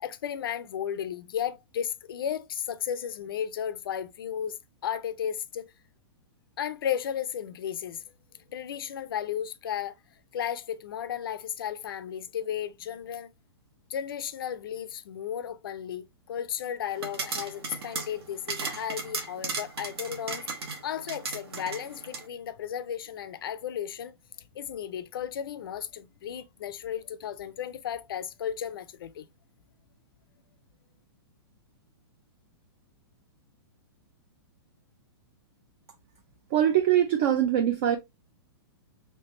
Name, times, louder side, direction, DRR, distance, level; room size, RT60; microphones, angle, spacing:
voice 1, 0.0-4.6 4.8-5.7 6.6-8.0 8.5-10.0 10.3-13.3 13.9-24.1 24.6-29.3, left 9 dB, 60° left, 0.5 m, -34 dB
sound 1, 16.9-22.3, right 4 dB, 70° right, 1.1 m, -36 dB
voice 2, 36.5-38.0, right 10 dB, 25° right, 0.4 m, -23 dB
3.3 x 3.2 x 2.9 m
hypercardioid pair, 175°, 14 cm